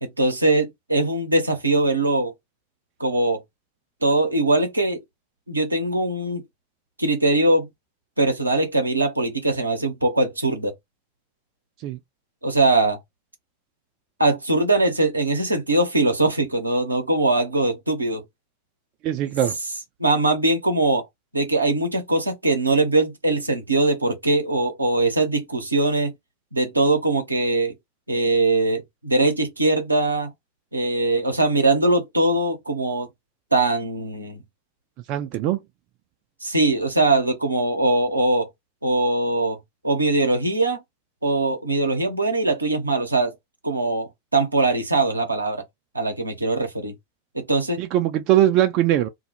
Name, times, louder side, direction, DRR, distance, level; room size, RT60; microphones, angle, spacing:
voice 1, 0.0-2.3 3.0-3.4 4.0-5.0 5.5-6.4 7.0-7.7 8.2-10.7 12.4-13.0 14.2-18.2 20.0-21.0 21.3-26.1 26.5-27.7 28.1-30.3 30.7-33.1 33.5-34.4 36.4-38.5 38.8-39.6 39.8-40.8 41.2-43.3 43.6-45.6 45.9-46.9 47.3-47.8, right 2 dB, 85° right, 0.6 m, -21 dB
voice 2, 19.0-19.6 35.1-35.6 47.8-49.1, right 12 dB, 45° right, 0.3 m, -21 dB
2.2 x 2.0 x 2.9 m
figure-of-eight pair, 85°, 0 cm